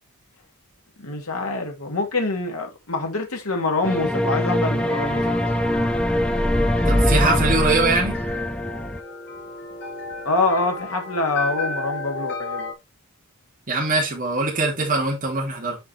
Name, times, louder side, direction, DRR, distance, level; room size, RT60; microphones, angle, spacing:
voice 1, 1.0-5.4 10.2-12.7, left 3 dB, 70° left, 2.4 m, -25 dB
sound 1, 3.8-9.0, equal, 5° left, 0.5 m, -22 dB
sound 2, 4.7-12.7, left 3 dB, 55° left, 2.7 m, -33 dB
voice 2, 6.9-8.1 13.7-15.8, right 3 dB, 40° right, 2.5 m, -22 dB
7.6 x 5.0 x 3.3 m
head